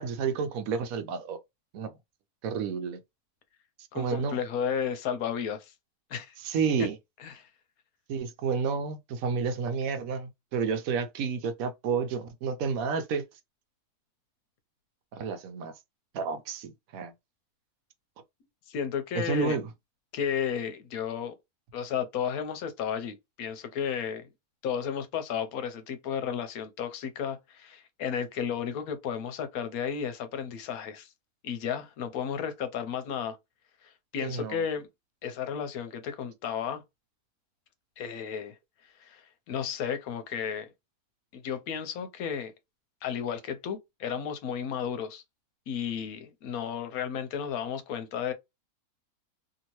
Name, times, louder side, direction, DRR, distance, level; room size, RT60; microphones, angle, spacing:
voice 1, 0.0-1.4 1.7-1.9 2.4-3.0 3.9-4.4 6.4-7.0 8.1-13.2 15.1-15.7 16.1-17.1 19.1-19.7 34.2-34.6, right 5 dB, 75° right, 1.0 m, -30 dB
voice 2, 3.9-5.7 6.1-6.3 7.2-7.5 18.7-19.6 20.1-21.3 21.7-24.3 24.6-31.1 31.4-33.4 34.1-34.9 35.2-36.8 38.0-38.5 39.0-40.7 41.3-42.5 43.0-45.2 45.7-48.3, left 7 dB, 80° left, 1.1 m, -33 dB
2.8 x 2.7 x 3.0 m
omnidirectional pair, 1.5 m